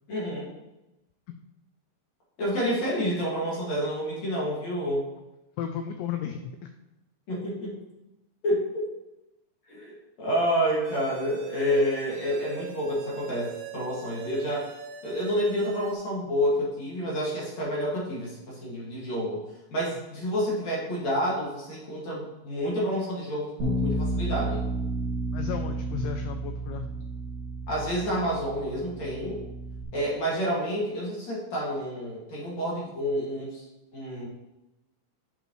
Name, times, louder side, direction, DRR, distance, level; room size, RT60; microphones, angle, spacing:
voice 1, 0.1-0.5 2.4-5.0 7.3-7.8 8.4-8.9 9.7-14.7 15.0-19.4 19.7-24.6 27.7-29.4 29.9-33.6 33.9-34.3, equal, 50° left, -6 dB, 2.4 m, -29 dB
voice 2, 5.6-6.5 25.3-26.9, left 9 dB, 90° left, 6 dB, 2.5 m, -33 dB
sound 1, 10.8-15.9, right 7 dB, 80° right, 2.5 m, -42 dB
Bass guitar, 23.6-29.8, right 1 dB, 35° right, 1.7 m, -32 dB
8.1 x 7.6 x 3.1 m, 0.97 s
omnidirectional pair, 5.6 m